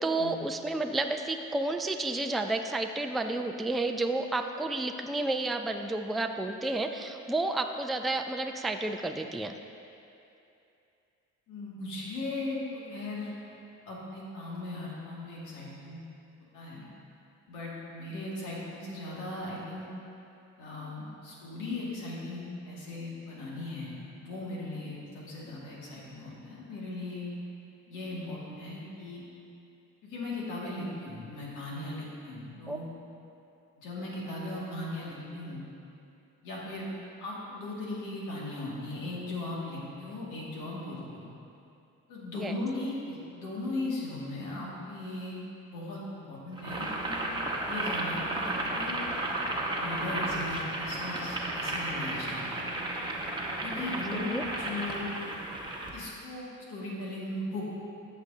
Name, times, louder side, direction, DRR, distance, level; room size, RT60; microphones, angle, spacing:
voice 1, 0.0-9.5 32.7-32.8 42.3-42.5 53.8-54.4, right 2 dB, ahead, 5 dB, 0.3 m, -31 dB
voice 2, 11.5-13.6 13.9-16.0 16.5-16.8 17.5-19.9 20.6-27.3 27.9-29.2 30.0-32.9 33.8-35.6 36.4-36.9 37.2-41.3 42.1-47.3 47.6-49.0 49.8-52.5 53.6-55.1 55.9-57.6, left 2 dB, 90° left, -5 dB, 2.1 m, -38 dB
Boiling, 46.6-56.0, right 1 dB, 15° right, 1.1 m, -33 dB
14.0 x 6.5 x 2.8 m, 2.7 s
cardioid pair, 90°, 30 cm